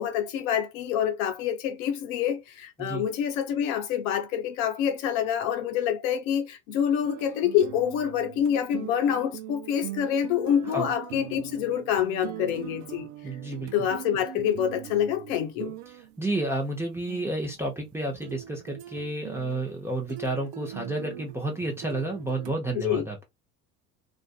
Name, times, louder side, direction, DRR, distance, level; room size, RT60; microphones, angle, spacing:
voice 1, 0.0-13.1 13.7-15.7 22.7-23.0, left 9 dB, 55° left, 0.7 m, -27 dB
sound 1, 7.0-16.2 17.1-22.5, right 11 dB, 60° right, 0.5 m, -42 dB
voice 2, 13.2-13.9 16.2-23.3, right 2 dB, 5° right, 0.7 m, -31 dB
2.5 x 2.4 x 2.3 m
figure-of-eight pair, 65°, 49 cm